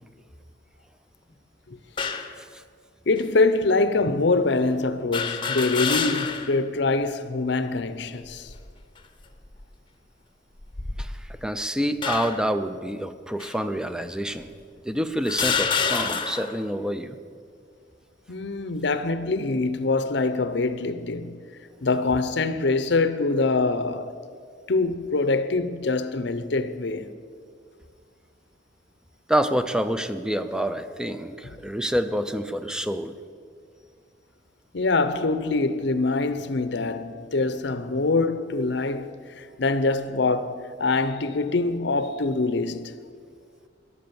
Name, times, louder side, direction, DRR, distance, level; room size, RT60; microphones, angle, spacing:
sound 1, 2.0-2.4 3.2-3.3 5.1-6.6 7.0-7.1 8.2-8.7 9.4-9.6 10.6-11.4 12.0-12.5 13.4-13.5 14.4-14.5 15.2-16.6, left 6 dB, 25° left, 0.9 m, -28 dB
voice 1, 3.1-8.5 18.3-21.5 21.8-24.2 24.7-27.1 31.4-31.6 34.7-42.9, left 3 dB, 70° left, 0.8 m, -24 dB
voice 2, 11.4-14.5 14.8-17.2 29.3-33.1, equal, 5° right, 0.6 m, -27 dB
13.5 x 11.0 x 7.0 m
head